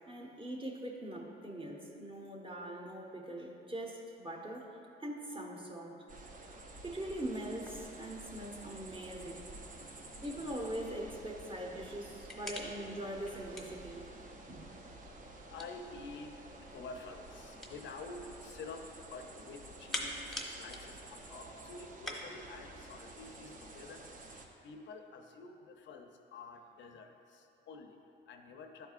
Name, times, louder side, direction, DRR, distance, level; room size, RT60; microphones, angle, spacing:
voice 1, 0.1-6.0 6.8-9.5 10.2-14.0 14.5-14.7, right 1 dB, 25° right, 0 dB, 1.0 m, -42 dB
sound 1, 6.1-24.5, right 2 dB, 45° right, 0.7 m, -51 dB
sound 2, 7.6-22.2, left 1 dB, ahead, 1.0 m, -49 dB
voice 2, 9.8-10.6 14.3-15.2 15.4-24.3 24.6-28.9, left 4 dB, 70° left, 4 dB, 0.6 m, -50 dB
11.5 x 4.5 x 2.4 m, 2.8 s
cardioid pair, 90°, 20 cm